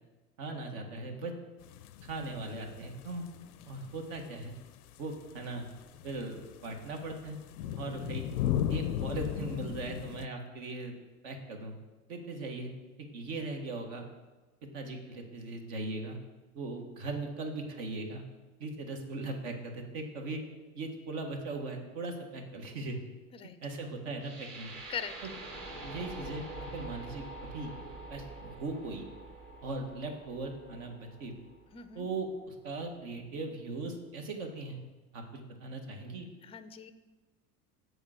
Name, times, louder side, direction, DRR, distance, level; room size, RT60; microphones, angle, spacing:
voice 1, 0.4-1.3 2.0-3.2 3.7-4.5 5.0-5.7 6.0-6.4 6.6-7.4 7.7-8.3 8.7-10.9 11.2-11.7 12.1-12.7 13.0-14.1 14.6-16.2 16.5-18.2 18.6-20.4 20.7-23.0 23.6-24.7 25.8-26.4 26.7-27.7 28.1-29.1 29.6-31.3 31.9-34.8 35.1-36.3, right 2 dB, 65° right, 3 dB, 1.7 m, -39 dB
sound 1, 1.6-10.3, left 11 dB, 80° left, 0.5 m, -37 dB
sound 2, 24.2-32.2, right 2 dB, 45° right, 2.5 m, -46 dB
voice 2, 31.7-32.1 36.4-36.9, left 8 dB, 15° left, 12 dB, 0.4 m, -40 dB
7.2 x 4.8 x 6.5 m, 1.2 s
hypercardioid pair, 80°, 44 cm